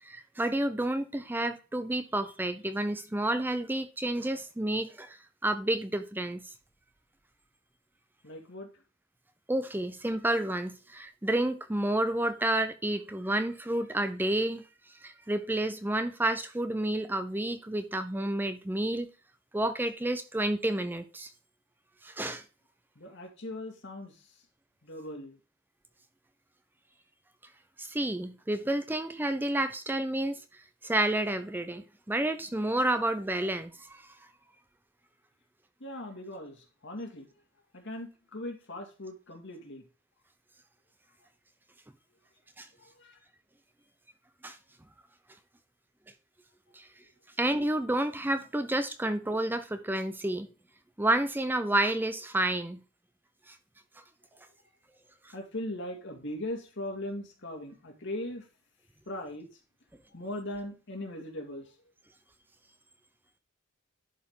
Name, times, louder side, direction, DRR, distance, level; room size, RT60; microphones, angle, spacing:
voice 1, 0.0-5.2 5.4-6.5 9.5-14.6 15.0-19.1 19.5-21.3 22.0-22.4 27.8-30.4 30.8-34.1 42.6-42.7 44.4-44.6 46.7-46.9 47.4-50.5 51.0-52.8 53.5-53.6 55.2-55.3, right 1 dB, 10° right, 0.5 m, -30 dB
voice 2, 8.2-8.7 23.0-24.4 24.8-25.4 35.8-37.3 37.7-39.8 42.8-43.2 55.3-58.5 59.1-59.5 60.1-61.7, left 1 dB, 65° left, 2.0 m, -39 dB
11.0 x 4.9 x 3.6 m
head